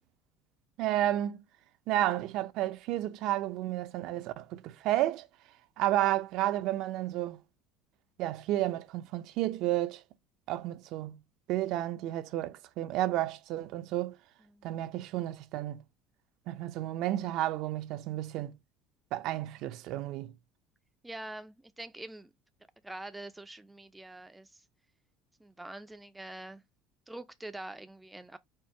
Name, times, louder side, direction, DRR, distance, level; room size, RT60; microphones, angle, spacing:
voice 1, 0.8-1.4 1.9-5.3 5.8-7.4 8.2-10.0 10.5-11.2 11.5-14.2 14.6-15.8 16.5-18.5 19.1-20.3, right 14 dB, 60° right, 0.5 m, -31 dB
voice 2, 21.0-22.3 22.8-24.6 25.4-26.6 27.1-28.4, right 1 dB, 5° right, 0.4 m, -45 dB
4.4 x 2.5 x 4.5 m
cardioid pair, 140°, 0 cm